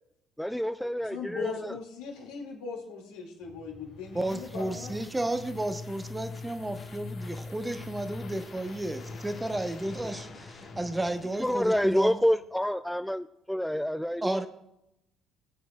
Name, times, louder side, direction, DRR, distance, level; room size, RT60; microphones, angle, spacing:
voice 1, 0.4-1.8 11.4-14.5, equal, ahead, 0.4 m, -28 dB
voice 2, 1.1-5.0, left 5 dB, 65° left, 2.4 m, -38 dB
sound 1, 3.4-11.2, left 3 dB, 30° left, 1.8 m, -44 dB
sound 2, 3.6-12.4, left 4 dB, 50° left, 1.6 m, -49 dB
voice 3, 4.1-12.2 14.2-14.5, right 1 dB, 15° right, 1.0 m, -33 dB
18.5 x 8.2 x 2.4 m
figure-of-eight pair, 50°, 0 cm